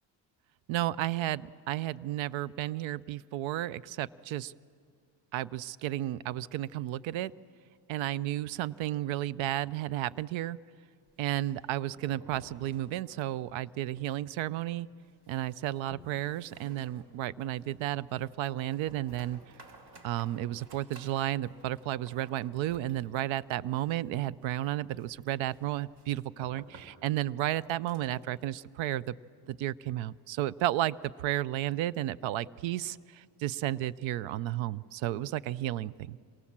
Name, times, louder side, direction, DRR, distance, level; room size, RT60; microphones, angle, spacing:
voice 1, 0.7-4.5 5.3-7.3 7.9-10.6 11.2-14.9 15.3-19.4 20.0-29.2 29.5-36.2, right 14 dB, 85° right, 20 dB, 0.6 m, -33 dB
sound 1, 11.1-13.4 13.7-13.8 14.1-14.2 14.7-28.3, right 2 dB, 60° right, 3.6 m, -56 dB
27.0 x 22.5 x 7.4 m, 2.3 s
cardioid pair, 100°, 45 cm